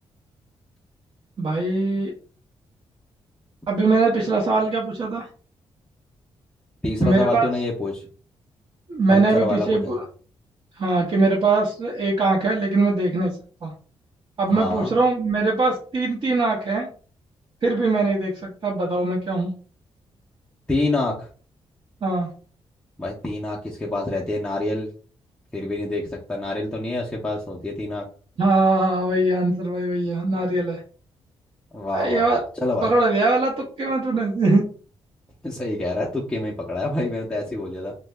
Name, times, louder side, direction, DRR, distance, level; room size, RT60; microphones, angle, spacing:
voice 1, 1.4-2.1 3.7-5.3 7.0-7.5 8.9-10.0 10.8-13.3 13.6-13.7 14.4-16.9 17.6-19.5 22.0-22.3 28.4-30.8 31.9-32.4 32.8-34.6, right 3 dB, 50° right, -2 dB, 0.8 m, -21 dB
voice 2, 6.8-8.1 9.1-10.0 14.5-14.9 20.7-21.3 23.0-24.9 25.5-28.0 31.7-32.9 35.4-37.9, left 2 dB, 5° left, -4 dB, 0.5 m, -27 dB
2.7 x 2.1 x 3.3 m, 0.40 s
wide cardioid pair, 145°, 11 cm